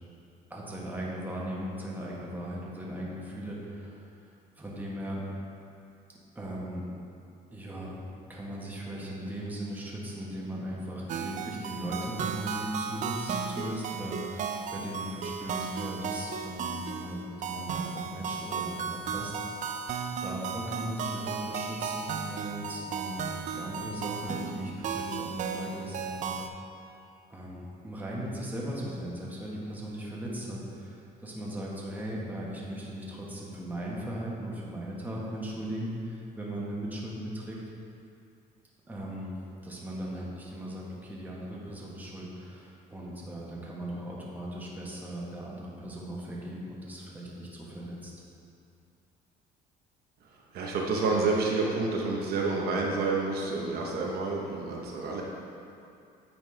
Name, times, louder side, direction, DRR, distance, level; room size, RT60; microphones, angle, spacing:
voice 1, 0.5-4.1 4.6-5.2 6.3-6.8 7.5-7.9 8.3-19.3 20.2-26.4 27.3-37.6 38.9-39.4 39.6-48.1, right 1 dB, 10° right, -5 dB, 1.2 m, -38 dB
sound 1, 11.1-26.5, right 6 dB, 45° right, 0.4 m, -35 dB
voice 2, 50.2-55.2, right 3 dB, 65° right, -2 dB, 0.8 m, -29 dB
8.8 x 4.2 x 3.3 m, 2.6 s
cardioid pair, 110°, 17 cm